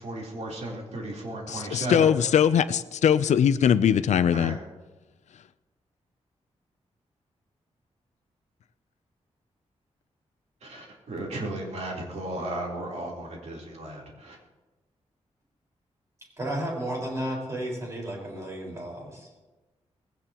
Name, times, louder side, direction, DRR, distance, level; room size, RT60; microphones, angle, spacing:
voice 1, 0.0-2.1 4.3-4.6 10.6-14.4, right 1 dB, 70° right, -3 dB, 3.7 m, -35 dB
voice 2, 1.5-4.6, left 8 dB, 85° left, 13 dB, 0.5 m, -21 dB
voice 3, 16.4-19.1, right 1 dB, 25° right, -2 dB, 4.9 m, -32 dB
20.0 x 16.5 x 3.0 m, 1.2 s
wide cardioid pair, 150°, 12 cm